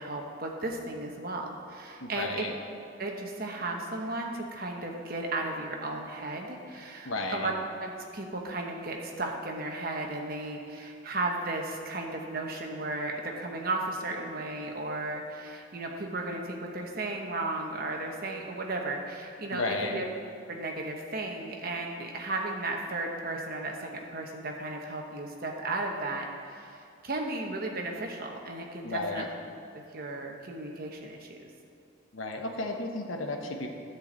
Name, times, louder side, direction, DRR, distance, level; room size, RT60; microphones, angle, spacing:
voice 1, 0.0-2.5 3.0-7.5 7.8-20.1 20.5-29.4 29.9-31.4, right 2 dB, 45° right, 1 dB, 1.1 m, -35 dB
voice 2, 2.0-2.5 7.0-7.5 19.5-20.0 28.8-29.3 32.1-33.7, left 2 dB, 80° left, 3 dB, 1.0 m, -33 dB
10.5 x 4.6 x 8.0 m, 2.6 s
head